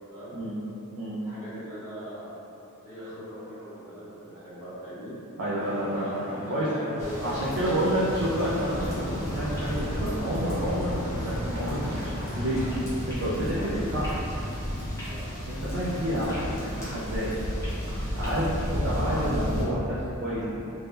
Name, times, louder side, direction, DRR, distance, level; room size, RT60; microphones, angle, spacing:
voice 1, 1.2-2.3 2.8-5.1 5.9-7.8 13.5-13.9 15.0-15.2, equal, 15° right, -16 dB, 1.5 m, -40 dB
voice 2, 5.4-6.1 6.5-6.7 7.2-12.6 13.1-14.1 15.5-17.3 18.2-20.6, equal, 70° right, -9 dB, 0.5 m, -29 dB
Vehicle horn car horn honking / Traffic noise roadway noise, 5.6-12.7, equal, 60° left, 0.7 m, -41 dB
sound 1, 7.0-19.6, equal, 15° left, 0.6 m, -33 dB
3.3 x 2.6 x 2.2 m, 2.9 s
head